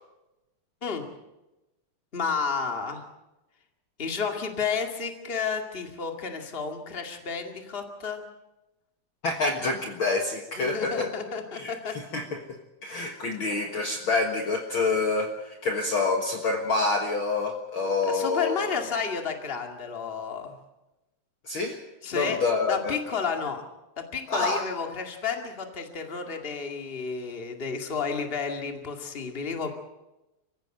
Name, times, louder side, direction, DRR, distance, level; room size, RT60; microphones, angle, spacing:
voice 1, 2.1-3.0 4.0-8.2 10.6-12.0 18.1-20.6 22.0-22.4 22.7-23.6 24.1-29.7, left 5 dB, 20° left, 3 dB, 2.0 m, -31 dB
voice 2, 9.2-11.1 11.5-12.4 12.8-18.7 21.5-21.8 22.1-23.0 24.3-24.6, left 3 dB, 50° left, 3 dB, 2.0 m, -27 dB
25.0 x 15.5 x 7.8 m, 1.0 s
omnidirectional pair, 3.4 m